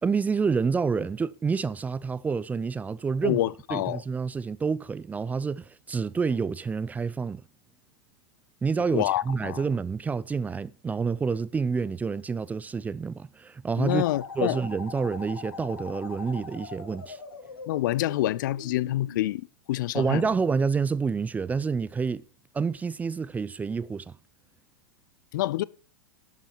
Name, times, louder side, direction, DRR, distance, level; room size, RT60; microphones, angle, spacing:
voice 1, 0.0-3.4 3.7-7.4 8.6-14.0 14.4-17.2 19.9-22.2 22.5-24.2, right 5 dB, 15° right, 0.4 m, -28 dB
voice 2, 3.2-4.0 8.9-9.6 13.8-14.6 17.7-20.3 25.3-25.6, left 15 dB, 60° left, 0.5 m, -27 dB
sound 1, 13.9-19.3, left 4 dB, 85° left, 2.0 m, -41 dB
12.0 x 7.3 x 5.5 m
hypercardioid pair, 100°, 12 cm